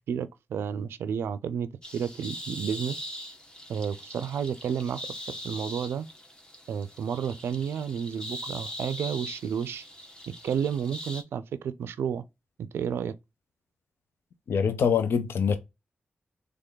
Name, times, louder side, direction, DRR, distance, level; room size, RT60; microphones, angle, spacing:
voice 1, 0.1-3.0 3.7-5.0 5.3-6.1 6.7-9.8 10.3-12.2 12.6-13.1, right 8 dB, 85° right, 0.4 m, -31 dB
sound 1, 1.8-11.2, equal, 20° left, 1.3 m, -41 dB
voice 2, 14.5-15.6, left 6 dB, 75° left, 0.6 m, -24 dB
3.4 x 3.4 x 3.8 m
supercardioid pair, 40°, 4 cm